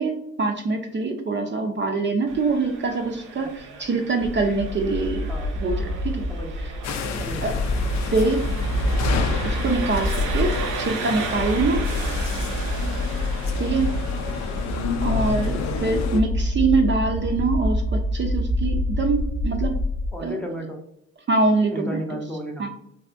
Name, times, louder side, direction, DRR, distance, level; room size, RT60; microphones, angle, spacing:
voice 1, 0.0-5.3 5.6-6.3 7.4-7.6 8.1-8.4 9.4-11.8 13.6-13.9 15.0-19.7 20.2-20.4 21.3-22.2 22.6-22.7, right 3 dB, 40° right, 3 dB, 0.5 m, -24 dB
Engine, 2.3-16.3, right 5 dB, 90° right, 0.6 m, -36 dB
sound 1, 4.2-20.1, left 1 dB, 40° left, 0.8 m, -26 dB
voice 2, 6.3-6.7 7.2-7.6 15.1-15.3 20.1-20.8 21.7-22.7, equal, 5° left, 0 dB, 0.6 m, -33 dB
sound 2, 6.8-16.2, left 5 dB, 65° left, 0.5 m, -31 dB
3.4 x 2.6 x 2.5 m, 0.76 s
cardioid pair, 90°, 30 cm